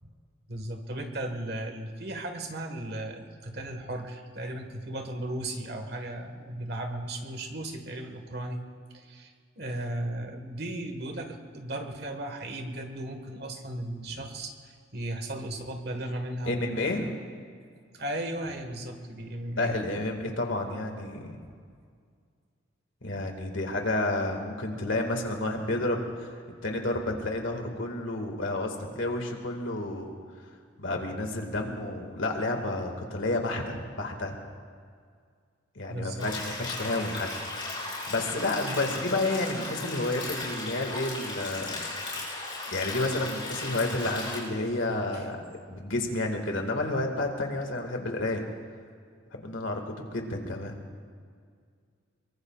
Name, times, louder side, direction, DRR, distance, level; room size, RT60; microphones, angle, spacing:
voice 1, 0.5-8.6 8.9-17.0 17.9-19.8 21.4-21.5 35.9-36.3 45.1-45.2, right 1 dB, 55° right, 5 dB, 1.6 m, -36 dB
voice 2, 16.5-17.1 19.6-21.3 23.0-30.1 30.8-34.4 35.8-37.3 37.8-41.8 42.7-45.4 45.7-48.4 49.3-50.8, left 2 dB, 80° left, 3 dB, 2.0 m, -30 dB
sound 1, 36.2-44.4, left 2 dB, 25° left, 5.5 m, -36 dB
23.0 x 23.0 x 2.4 m, 2.1 s
head